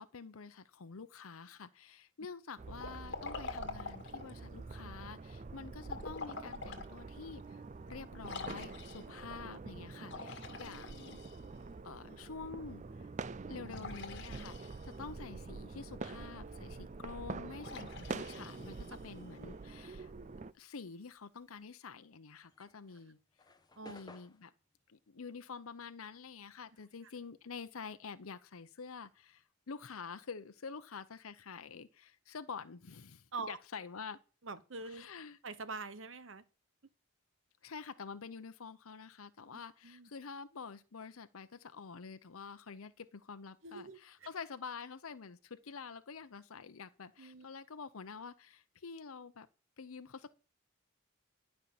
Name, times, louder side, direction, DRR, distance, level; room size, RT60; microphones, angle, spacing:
voice 1, 0.0-11.2 11.8-13.1 13.5-20.1 20.5-23.2 23.8-24.5 24.9-34.2 34.9-35.4 37.6-49.5 49.8-50.4, left 5 dB, 85° left, 0.7 m, -48 dB
sound 1, 2.6-20.5, right 4 dB, 35° right, 0.4 m, -46 dB
Liquid, 2.8-4.4 5.8-6.9 7.4-7.5 8.2-9.2 10.0-11.7 13.7-15.1 17.6-19.2, left 4 dB, 55° left, 1.8 m, -46 dB
sound 2, 22.4-27.1 27.4-29.4, left 3 dB, 20° left, 1.1 m, -59 dB
voice 2, 34.4-35.1 35.4-36.4 39.8-40.1 43.6-44.3 47.2-47.5, right 3 dB, 65° right, 1.1 m, -44 dB
12.0 x 5.6 x 7.1 m
head